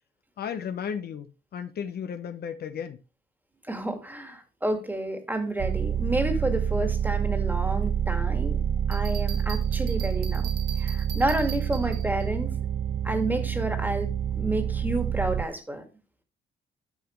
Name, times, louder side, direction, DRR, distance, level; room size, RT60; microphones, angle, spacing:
voice 1, 0.4-3.0, left 7 dB, 55° left, 0.9 m, -34 dB
voice 2, 3.7-8.6 8.9-10.5 10.8-12.6 13.0-15.8, right 1 dB, 10° right, 1.9 m, -30 dB
sound 1, 5.6-15.4, right 9 dB, 40° right, 0.5 m, -27 dB
Bell, 8.9-12.3, right 7 dB, 60° right, 1.3 m, -41 dB
10.0 x 6.0 x 3.1 m
cardioid pair, 105°, 19 cm